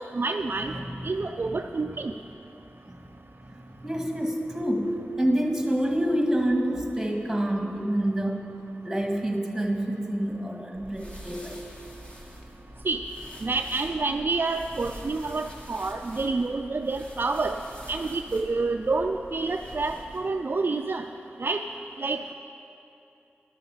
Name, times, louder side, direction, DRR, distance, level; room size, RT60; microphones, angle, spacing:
voice 1, 0.0-0.7 1.0-2.1 12.8-13.0 13.4-17.6 17.9-21.1 21.4-21.6 22.0-22.3, right 3 dB, 50° right, 5 dB, 0.4 m, -28 dB
voice 2, 0.6-1.0 1.4-1.9 2.9-3.0 3.5-8.5 8.8-11.6, right 1 dB, 5° right, 1 dB, 1.8 m, -28 dB
sound 1, 10.7-20.2, equal, 25° left, 1.9 m, -45 dB
11.5 x 6.6 x 7.2 m, 2.8 s
cardioid pair, 40°, 4 cm